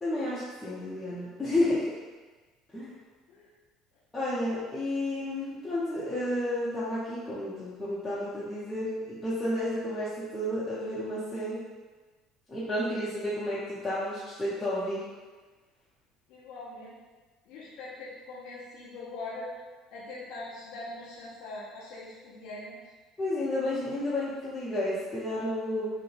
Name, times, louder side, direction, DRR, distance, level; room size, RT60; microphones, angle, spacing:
voice 1, 0.0-1.9 2.7-2.9 4.1-11.6 12.5-15.0 23.2-25.9, left 1 dB, 15° left, -11 dB, 0.7 m, -31 dB
voice 2, 16.3-17.0 17.4-19.5 19.9-22.9, left 2 dB, 55° left, -7 dB, 0.6 m, -42 dB
3.8 x 2.0 x 2.6 m, 1.3 s
figure-of-eight pair, 60°, 0 cm